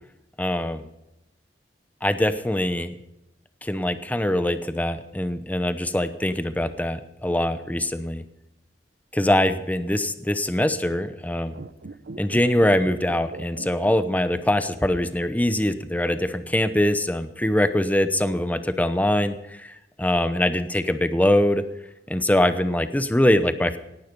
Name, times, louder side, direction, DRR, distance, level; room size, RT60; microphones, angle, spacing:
voice 1, 0.4-0.9 2.0-2.9 3.6-8.2 9.1-11.5 12.2-21.6 22.1-23.8, left 1 dB, 10° left, 11 dB, 0.8 m, -23 dB
sound 1, 11.5-14.9 15.1-15.2, right 3 dB, 65° right, 0.6 m, -40 dB
18.0 x 11.5 x 5.3 m, 0.88 s
head